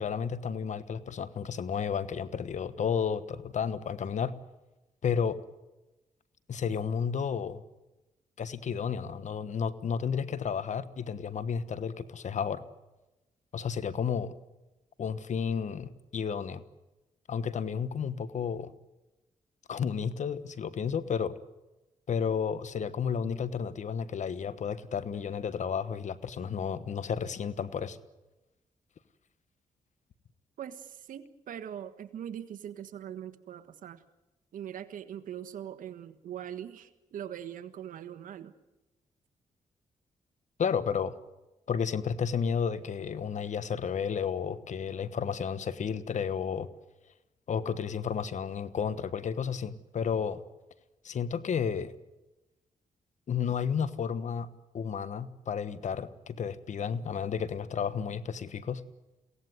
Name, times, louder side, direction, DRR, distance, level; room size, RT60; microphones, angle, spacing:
voice 1, 0.0-4.3 5.0-5.4 6.5-7.6 8.4-12.6 13.5-14.3 15.0-16.6 17.3-18.7 19.7-21.4 22.1-28.0 40.6-41.1 41.7-46.7 47.5-50.4 51.0-51.9 53.3-54.5 54.7-58.8, left 7 dB, 65° left, 15 dB, 1.2 m, -32 dB
voice 2, 30.6-34.0 34.5-38.5, right 10 dB, 80° right, 11 dB, 1.5 m, -41 dB
23.0 x 17.5 x 9.5 m, 1.0 s
cardioid pair, 75°, 14 cm